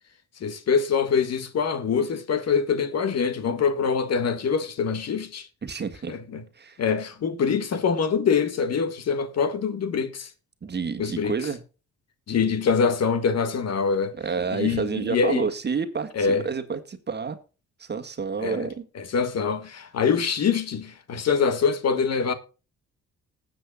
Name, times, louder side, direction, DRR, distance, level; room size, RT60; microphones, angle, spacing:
voice 1, 0.4-5.5 6.1-6.4 6.8-10.3 11.0-11.4 12.3-14.1 14.5-15.5 16.1-16.4 18.4-18.7 18.9-22.3, left 6 dB, 60° left, 1.5 m, -24 dB
voice 2, 5.6-6.1 6.6-6.8 10.6-11.6 14.2-17.4 17.8-18.8, right 5 dB, 35° right, 1.7 m, -29 dB
19.5 x 7.8 x 2.3 m
cardioid pair, 90°, 30 cm